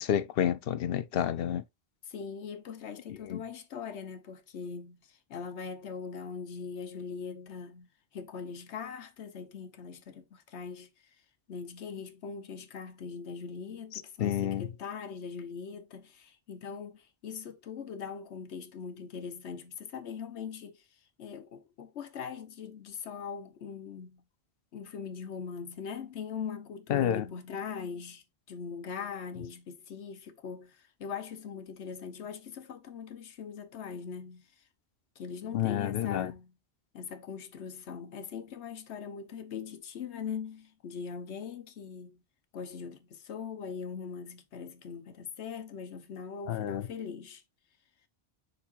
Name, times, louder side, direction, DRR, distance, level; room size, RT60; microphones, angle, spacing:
voice 1, 0.0-1.6 3.1-3.4 13.9-14.7 26.9-27.2 35.5-36.3 46.5-46.9, left 10 dB, 65° left, 0.8 m, -30 dB
voice 2, 2.1-10.9 11.5-20.8 21.2-24.2 24.7-34.5 35.2-36.5 36.9-42.2 42.5-47.4, left 6 dB, 90° left, 1.2 m, -41 dB
7.2 x 5.4 x 2.4 m
omnidirectional pair, 1.1 m